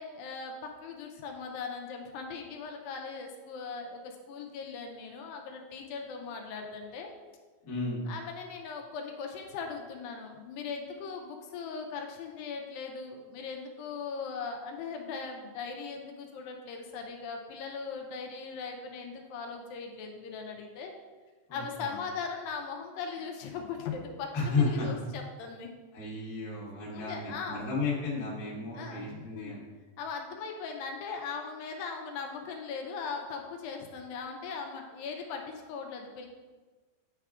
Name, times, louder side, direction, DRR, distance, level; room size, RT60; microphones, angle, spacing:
voice 1, 0.0-7.1 8.1-20.9 21.5-24.3 24.6-25.7 26.9-27.6 28.7-29.6 30.0-36.3, left 5 dB, 80° left, 2 dB, 2.3 m, -39 dB
voice 2, 7.6-8.0 21.5-21.9 24.3-24.9 25.9-29.6, left 3 dB, 45° left, -6 dB, 1.2 m, -33 dB
8.9 x 4.6 x 2.4 m, 1.3 s
omnidirectional pair, 4.1 m